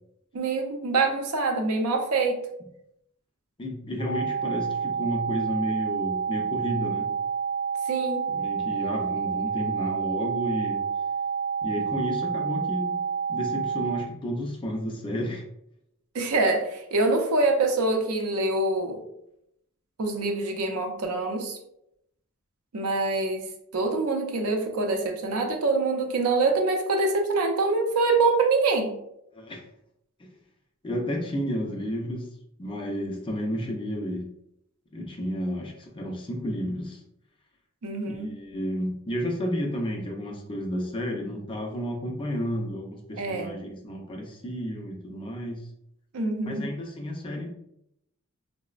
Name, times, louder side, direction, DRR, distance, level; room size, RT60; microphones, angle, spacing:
voice 1, 0.3-2.4 7.9-8.2 16.1-19.0 20.0-21.6 22.7-23.5 23.7-28.9 37.8-38.3 43.2-43.5 46.1-46.6, right 3 dB, 75° right, 3 dB, 0.5 m, -25 dB
voice 2, 3.6-7.1 8.3-10.8 11.6-13.0 13.3-15.4 29.3-29.7 30.2-30.3 30.8-32.3 32.6-34.3 34.9-37.0 38.1-45.7 46.4-47.5, equal, 25° left, 1 dB, 0.4 m, -31 dB
sound 1, 4.0-14.0, right 6 dB, 30° right, 0.7 m, -29 dB
3.9 x 2.0 x 2.4 m, 0.78 s
head